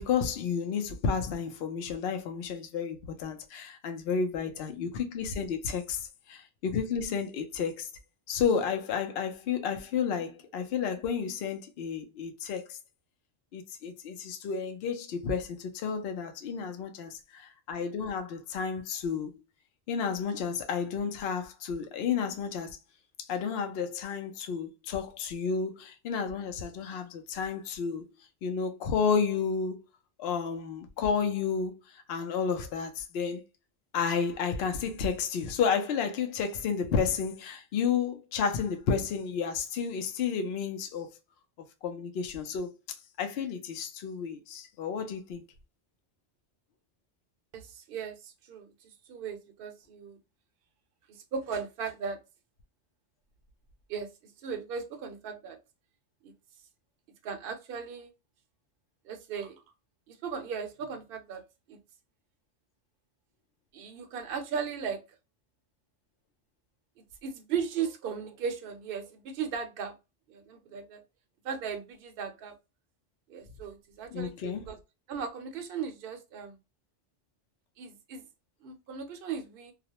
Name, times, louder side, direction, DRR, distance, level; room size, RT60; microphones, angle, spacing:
voice 1, 0.0-7.9 8.3-12.8 13.5-19.3 19.9-22.8 23.3-28.0 28.4-29.8 30.2-33.4 33.9-41.1 41.8-42.7 43.2-45.4 74.1-74.6, left 6 dB, 65° left, 0.7 m, -31 dB
voice 2, 47.5-50.2 51.1-52.2 53.9-54.1 54.4-55.6 56.2-56.3 57.2-58.1 59.0-59.6 60.1-61.4 61.7-61.8 63.7-65.0 67.2-69.9 70.3-71.0 71.4-72.5 73.3-74.8 75.1-76.6 77.8-78.3 78.6-79.7, right 6 dB, 60° right, 0.7 m, -37 dB
2.4 x 2.0 x 2.8 m
omnidirectional pair, 1.2 m